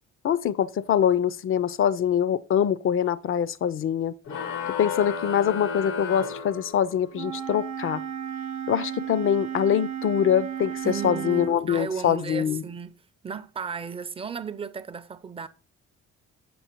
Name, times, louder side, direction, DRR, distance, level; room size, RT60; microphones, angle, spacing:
voice 1, 0.2-4.1 4.8-8.0 8.7-12.6, left 9 dB, 45° left, 0.4 m, -24 dB
sound 1, 4.3-7.2, left 5 dB, 80° left, 0.9 m, -32 dB
Wind instrument woodwind instrument, 7.1-11.6, right 9 dB, 60° right, 0.7 m, -34 dB
voice 2, 10.8-15.5, right 6 dB, 20° right, 0.4 m, -35 dB
6.9 x 5.9 x 2.9 m
cardioid pair, 90°, 30 cm